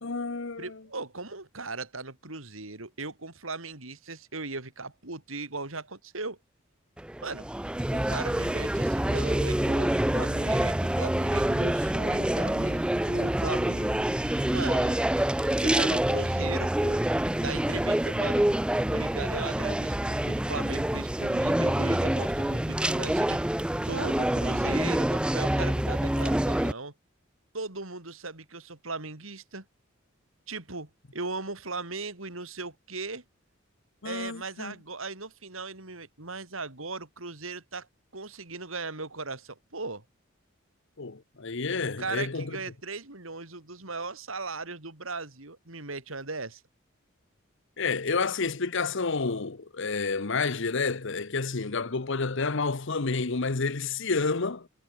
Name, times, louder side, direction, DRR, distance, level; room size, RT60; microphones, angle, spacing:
voice 1, 0.0-0.8 34.0-34.7 41.0-42.6 47.8-54.7, left 4 dB, 65° left, 1.1 m, -29 dB
voice 2, 0.6-6.4 7.2-7.5 7.9-14.2 14.5-15.0 15.6-17.0 17.4-18.5 18.9-23.4 23.9-26.9 27.5-29.7 30.5-33.2 34.0-37.9 38.1-40.0 41.8-46.6, right 3 dB, 75° right, 4.1 m, -38 dB
sound 1, 7.0-26.7, right 1 dB, 5° right, 0.4 m, -26 dB
head